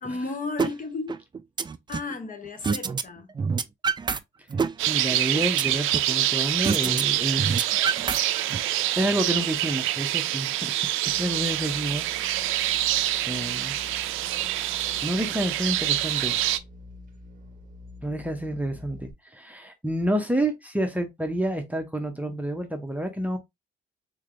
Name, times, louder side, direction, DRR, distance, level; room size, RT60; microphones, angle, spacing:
voice 1, 0.0-1.2 1.9-3.3, left 3 dB, 40° left, 1.0 m, -34 dB
sound 1, 0.6-0.7 1.1-2.1 2.6-3.0 3.3-4.2 4.5-6.1 6.6-7.0 7.3-8.6, right 5 dB, 25° right, 0.3 m, -27 dB
sound 2, 4.8-16.6, right 14 dB, 90° right, 0.4 m, -26 dB
voice 2, 4.9-7.5 8.9-12.0 13.2-13.8 15.0-16.3 18.0-23.4, right 1 dB, 10° right, 0.7 m, -29 dB
sound 3, 11.1-19.1, left 1 dB, 40° right, 0.7 m, -47 dB
3.8 x 3.2 x 2.5 m
cardioid pair, 90°, 20 cm